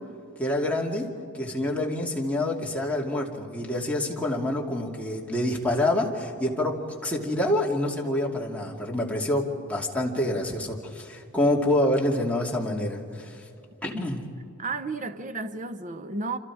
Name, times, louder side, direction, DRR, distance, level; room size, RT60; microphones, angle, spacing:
voice 1, 0.4-1.1 1.3-6.7 7.0-13.4 13.8-14.2, left 1 dB, 5° left, 2.6 m, -27 dB
voice 2, 13.9-14.3 14.6-16.4, right 3 dB, 35° right, 0.9 m, -33 dB
28.5 x 26.0 x 4.9 m
head